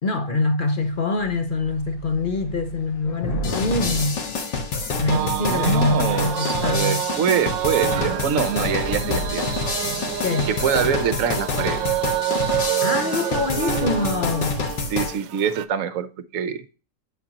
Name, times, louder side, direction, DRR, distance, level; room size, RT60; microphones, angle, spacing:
voice 1, 0.0-4.2 5.0-7.0 10.2-10.5 12.8-14.6, left 3 dB, 45° left, 0.7 m, -24 dB
Thunder / Rain, 0.8-0.9 1.2-5.3 6.0-6.5 6.9-7.0 7.3-11.0, equal, 85° left, 2.3 m, -35 dB
sound 1, 3.4-15.1, left 4 dB, 70° left, 2.2 m, -27 dB
voice 2, 5.1-9.4 10.5-11.9 14.9-16.6, right 8 dB, 55° right, 1.1 m, -25 dB
sound 2, 5.1-15.6, right 12 dB, 80° right, 1.3 m, -28 dB
10.5 x 5.3 x 2.9 m
omnidirectional pair, 2.0 m